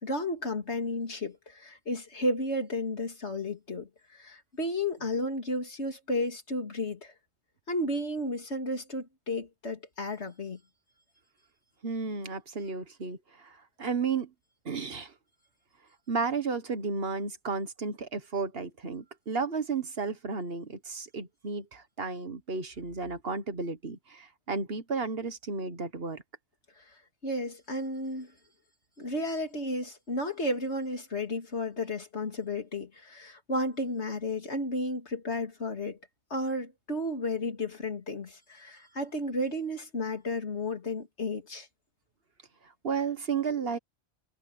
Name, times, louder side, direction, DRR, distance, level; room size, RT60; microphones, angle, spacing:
voice 1, 0.0-7.1 7.7-10.6 26.8-27.0 27.2-28.3 29.0-36.0 36.3-41.7, left 1 dB, 75° left, 3.2 m, -33 dB
voice 2, 11.8-14.3 14.7-15.1 16.1-26.2 42.8-43.8, right 4 dB, 60° right, 1.6 m, -33 dB
omnidirectional pair, 1.2 m